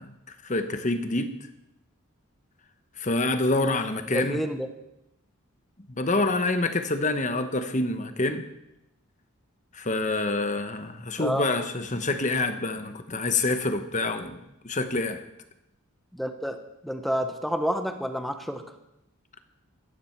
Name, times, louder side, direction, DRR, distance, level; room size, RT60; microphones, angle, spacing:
voice 1, 0.0-1.3 3.0-4.4 5.9-8.4 9.7-15.2, left 2 dB, 35° left, 8 dB, 1.1 m, -27 dB
voice 2, 4.1-4.7 11.2-11.4 16.1-16.6 16.8-18.6, equal, ahead, 6 dB, 1.0 m, -29 dB
15.5 x 13.0 x 4.6 m, 0.88 s
head